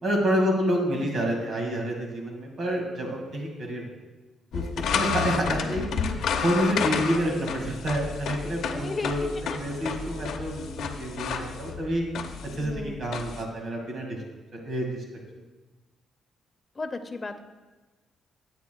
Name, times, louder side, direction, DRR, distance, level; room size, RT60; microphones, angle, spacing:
voice 1, 0.0-3.9 4.5-4.6 4.9-6.1 6.4-12.1 12.4-14.2 14.5-15.0, equal, 55° right, 0 dB, 1.9 m, -28 dB
sound 1, 4.5-13.4, left 6 dB, 75° left, 0.7 m, -31 dB
voice 2, 8.6-9.9 12.6-13.1 16.8-17.4, left 3 dB, 30° left, 7 dB, 0.7 m, -36 dB
13.0 x 8.4 x 2.3 m, 1.2 s
cardioid pair, 90°, 0 cm